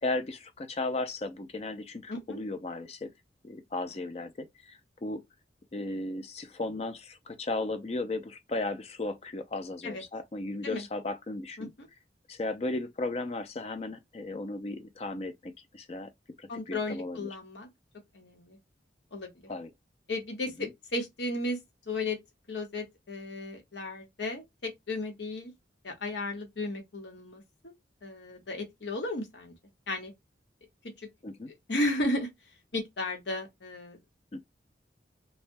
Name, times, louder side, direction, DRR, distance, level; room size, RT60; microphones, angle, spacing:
voice 1, 0.0-3.1 3.4-5.2 5.7-11.7 12.3-16.1 16.4-17.3 19.5-19.7 20.6-20.7 31.2-31.5 34.3-34.4, left 2 dB, 35° left, 0.4 m, -35 dB
voice 2, 16.5-17.7 18.1-18.6 19.1-19.3 20.1-21.6 21.9-22.2 22.5-25.5 25.8-27.7 28.0-29.5 29.9-30.1 31.7-32.3 32.7-34.0, left 2 dB, 75° left, 1.0 m, -34 dB
3.2 x 2.1 x 2.5 m
head